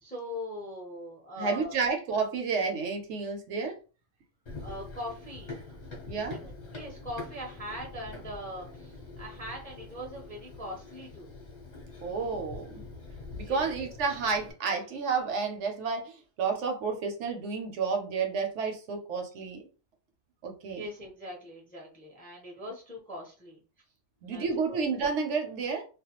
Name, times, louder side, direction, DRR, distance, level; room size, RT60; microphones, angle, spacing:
voice 1, 0.0-1.8 4.6-5.8 6.3-11.3 13.4-13.9 20.7-23.6 24.2-24.8, equal, 10° left, -2 dB, 0.5 m, -41 dB
voice 2, 1.4-3.8 6.1-6.4 12.0-12.8 13.4-19.6 20.4-20.9 24.2-25.8, right 5 dB, 75° right, 4 dB, 0.9 m, -31 dB
Run, 4.5-14.5, left 3 dB, 40° left, 0.8 m, -44 dB
2.4 x 2.2 x 2.8 m, 0.34 s
omnidirectional pair, 1.3 m